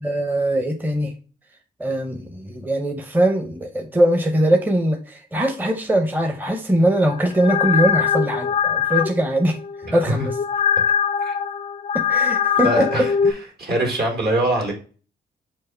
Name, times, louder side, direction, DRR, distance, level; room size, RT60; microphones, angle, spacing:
voice 1, 0.0-1.1 1.8-9.6 9.9-10.4 11.9-13.1, right 1 dB, 10° right, 5 dB, 0.7 m, -21 dB
sound 1, 7.1-13.3, left 7 dB, 35° left, 0.4 m, -22 dB
voice 2, 12.6-13.1 13.6-14.7, right 1 dB, 60° right, 0 dB, 2.2 m, -22 dB
4.5 x 2.6 x 4.4 m, 0.37 s
cardioid pair, 60°, 19 cm